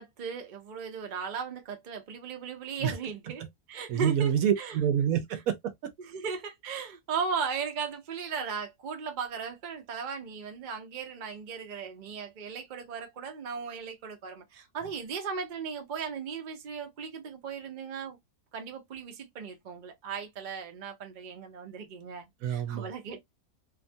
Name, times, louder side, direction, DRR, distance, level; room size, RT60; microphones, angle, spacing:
voice 1, 0.0-4.3 4.6-4.8 6.0-18.2 18.5-23.2, right 6 dB, 45° right, 0.6 m, -37 dB
voice 2, 3.9-5.7 22.4-22.9, right 9 dB, 75° right, 1.0 m, -27 dB
2.8 x 2.4 x 2.5 m
omnidirectional pair, 1.6 m